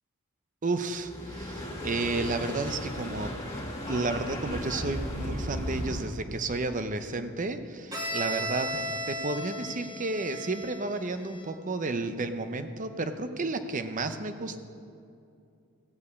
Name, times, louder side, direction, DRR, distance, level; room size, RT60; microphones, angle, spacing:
voice 1, 0.6-14.6, right 2 dB, 35° right, 9 dB, 0.6 m, -32 dB
sound 1, 0.9-6.1, equal, 15° left, 2.3 m, -35 dB
Bowed string instrument, 7.9-11.7, equal, 20° right, 1.8 m, -36 dB
16.0 x 5.5 x 8.2 m, 2.5 s
head